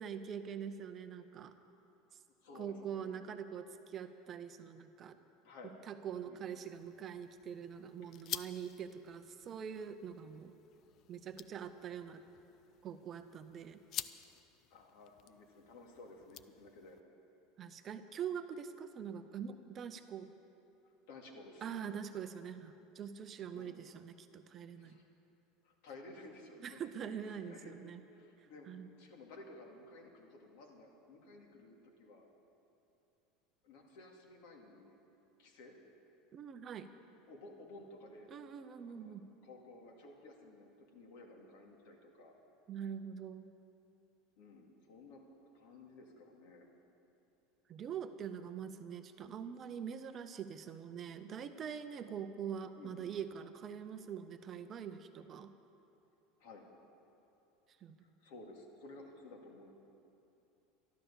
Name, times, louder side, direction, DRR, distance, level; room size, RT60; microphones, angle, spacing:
voice 1, 0.0-1.5 2.1-2.2 2.5-5.2 5.9-10.5 11.1-12.2 12.8-13.8 17.6-20.3 21.6-25.0 26.6-28.0 28.4-28.9 36.3-36.9 38.3-39.3 42.7-43.5 47.7-55.5 57.8-58.0, right 8 dB, 30° right, 9 dB, 0.6 m, -44 dB
voice 2, 2.4-3.2 5.4-5.8 6.3-6.4 8.0-8.1 14.7-17.0 21.1-21.7 23.5-23.8 24.7-25.1 25.6-26.8 27.3-27.8 28.1-28.7 29.0-32.3 33.6-35.0 35.4-35.8 37.3-38.5 38.9-42.3 44.4-45.2 45.5-46.7 52.8-53.0 56.4-56.7 58.0-59.7, left 2 dB, 65° left, 1 dB, 2.2 m, -55 dB
sound 1, 6.7-17.0, left 11 dB, 40° left, 0.4 m, -50 dB
12.5 x 12.5 x 7.0 m, 2.8 s
supercardioid pair, 160°, 0 cm